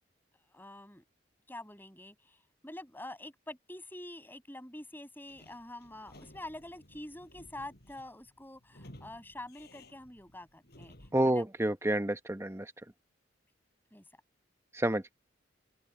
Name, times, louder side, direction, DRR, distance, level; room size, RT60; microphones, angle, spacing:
voice 1, 0.5-1.0 1.5-11.5 13.9-14.0, left 1 dB, 10° left, 7.8 m, -46 dB
Sliding door / Squeak, 5.2-11.3, left 1 dB, 55° left, 5.5 m, -56 dB
voice 2, 11.1-12.7 14.7-15.1, right 1 dB, 15° right, 1.1 m, -29 dB
open air
head